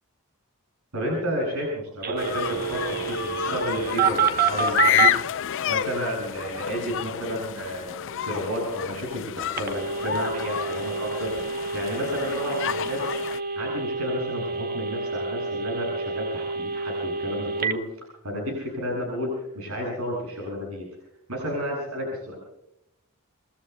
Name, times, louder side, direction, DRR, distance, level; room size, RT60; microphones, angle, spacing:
voice 1, 0.9-5.1 5.7-8.0 8.2-13.1 13.5-17.8 18.2-20.9 21.3-22.4, equal, 70° right, -1 dB, 7.4 m, -31 dB
Telephone, 2.0-5.1 9.6-17.7, right 6 dB, 45° right, 1.0 m, -28 dB
sound 1, 2.2-13.4, left 10 dB, 60° left, 0.5 m, -29 dB
27.0 x 22.0 x 2.3 m, 0.83 s
head